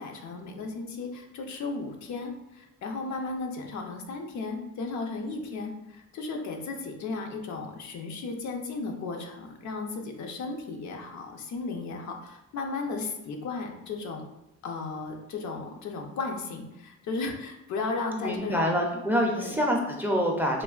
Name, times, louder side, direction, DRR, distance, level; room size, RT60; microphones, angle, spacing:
voice 1, 0.0-14.2 14.6-18.7 19.4-19.6, left 3 dB, 70° left, 3 dB, 0.6 m, -35 dB
voice 2, 18.2-20.6, equal, 5° right, 0 dB, 0.4 m, -26 dB
3.2 x 2.2 x 2.3 m, 0.92 s
cardioid pair, 90°, 30 cm